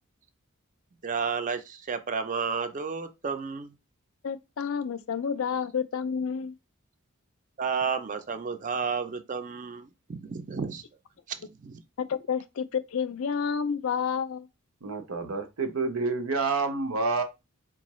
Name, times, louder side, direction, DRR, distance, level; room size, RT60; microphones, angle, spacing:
voice 1, 1.0-3.7 7.6-10.8 11.3-11.8, right 5 dB, 35° right, 0.4 m, -32 dB
voice 2, 4.2-6.5 12.0-14.5, left 6 dB, 70° left, 0.4 m, -30 dB
voice 3, 14.8-17.2, right 3 dB, 90° right, 0.8 m, -28 dB
4.6 x 2.4 x 3.0 m
head